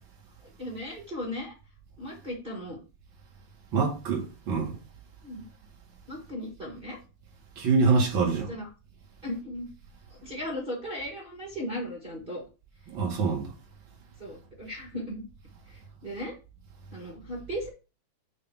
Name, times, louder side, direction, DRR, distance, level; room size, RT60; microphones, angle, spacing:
voice 1, 0.6-1.5 2.0-2.8 5.2-5.4 6.1-7.0 8.2-8.7 9.2-9.7 10.2-12.4 14.2-15.2 15.7-16.3 16.9-17.7, equal, 80° right, 0.4 m, -36 dB
voice 2, 3.7-4.7 7.6-8.5 12.9-13.5, right 4 dB, 40° right, 2.3 m, -25 dB
7.2 x 3.3 x 5.7 m
omnidirectional pair, 3.9 m